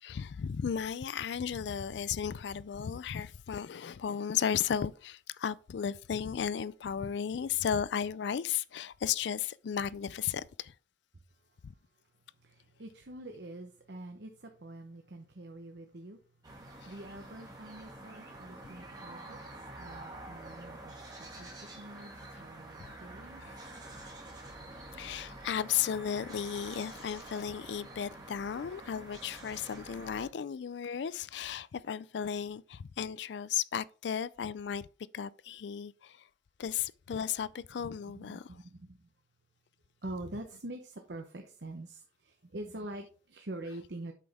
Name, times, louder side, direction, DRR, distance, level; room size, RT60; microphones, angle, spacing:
voice 1, 0.0-10.7 11.6-11.7 16.8-16.9 23.4-23.6 24.9-34.9 35.1-36.3 36.6-38.6, left 8 dB, 75° left, 0.4 m, -35 dB
voice 2, 12.4-16.2 16.5-19.4 19.8-20.9 21.2-23.4 38.1-39.0 40.0-44.1, right 1 dB, 70° right, 0.9 m, -45 dB
sound 1, 16.4-30.3, right 2 dB, 20° right, 2.1 m, -48 dB
8.3 x 6.1 x 3.5 m
head